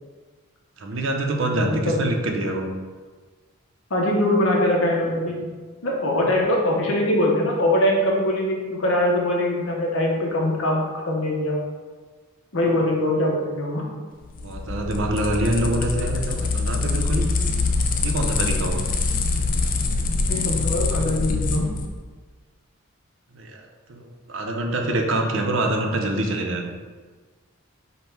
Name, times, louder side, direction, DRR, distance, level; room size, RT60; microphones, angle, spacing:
voice 1, 0.8-2.7 14.4-17.3 18.0-18.9 23.3-26.6, right 1 dB, 60° right, 2 dB, 0.6 m, -25 dB
voice 2, 1.5-2.1 3.9-5.4 5.8-11.6 12.5-13.9 20.3-21.7, left 1 dB, 65° left, -2 dB, 0.8 m, -22 dB
sound 1, 14.2-21.9, left 3 dB, 40° left, 0.3 m, -24 dB
5.3 x 2.2 x 4.4 m, 1.4 s
head